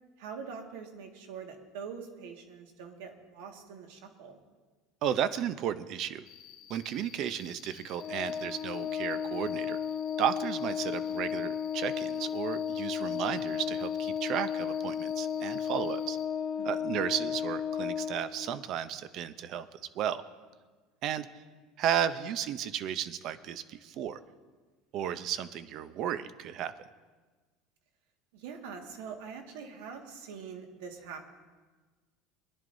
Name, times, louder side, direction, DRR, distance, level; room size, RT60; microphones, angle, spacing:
voice 1, 0.2-4.4 16.6-16.8 28.3-31.2, right 6 dB, 85° right, 3 dB, 1.7 m, -44 dB
voice 2, 5.0-6.2 6.7-9.8 10.2-16.2 16.6-19.7 19.9-20.2 21.0-21.3 21.8-24.2 24.9-26.7, right 9 dB, 45° right, 14 dB, 0.6 m, -33 dB
Cricket, 6.3-16.3, left 10 dB, 60° left, 2.5 m, -53 dB
Organ, 8.0-18.7, left 8 dB, 35° left, 0.6 m, -34 dB
23.0 x 10.5 x 2.7 m, 1.3 s
cardioid pair, 160°, 0 cm